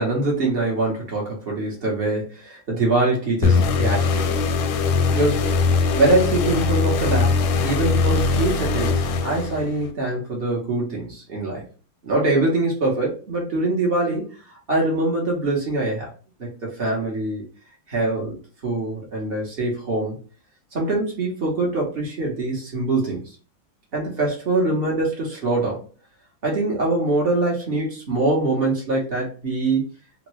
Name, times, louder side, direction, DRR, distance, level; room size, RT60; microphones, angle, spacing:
voice 1, 0.0-4.3 5.1-5.5 5.9-7.4 7.6-11.7 12.0-14.2 14.7-16.1 16.4-17.4 17.9-18.4 18.6-20.2 20.7-23.2 23.9-25.8 26.4-29.8, right 2 dB, 50° right, -2 dB, 0.7 m, -23 dB
sound 1, 3.4-9.9, left 4 dB, 90° left, 1.4 m, -21 dB
3.7 x 2.2 x 3.0 m, 0.38 s
omnidirectional pair, 2.2 m